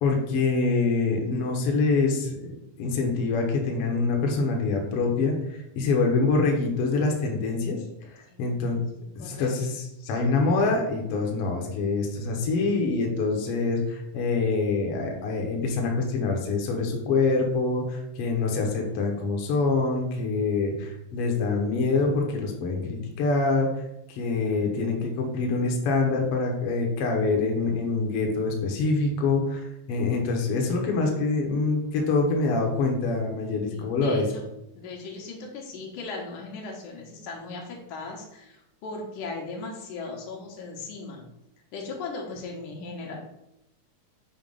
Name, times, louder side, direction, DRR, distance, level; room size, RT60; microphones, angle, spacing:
voice 1, 0.0-2.5 2.8-5.4 5.8-7.8 8.1-8.8 9.2-23.7 24.1-34.2, left 3 dB, 65° left, 1 dB, 1.6 m, -25 dB
voice 2, 8.3-8.8 9.2-9.5 33.7-34.4 34.7-41.3 41.7-43.2, left 3 dB, 80° left, 0 dB, 2.5 m, -38 dB
7.0 x 2.8 x 5.3 m, 0.85 s
omnidirectional pair, 3.5 m